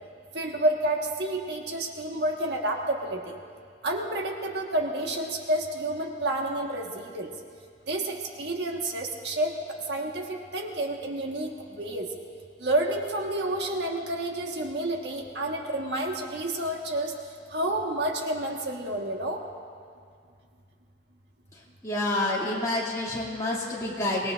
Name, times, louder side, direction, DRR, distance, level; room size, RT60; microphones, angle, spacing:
voice 1, 0.3-3.4 3.8-7.3 7.9-9.5 9.9-12.1 12.6-17.1 17.5-19.4, right 1 dB, 70° right, 1 dB, 1.6 m, -29 dB
voice 2, 21.5-24.3, left 1 dB, 20° left, -5 dB, 2.6 m, -29 dB
25.5 x 19.5 x 2.6 m, 2.2 s
head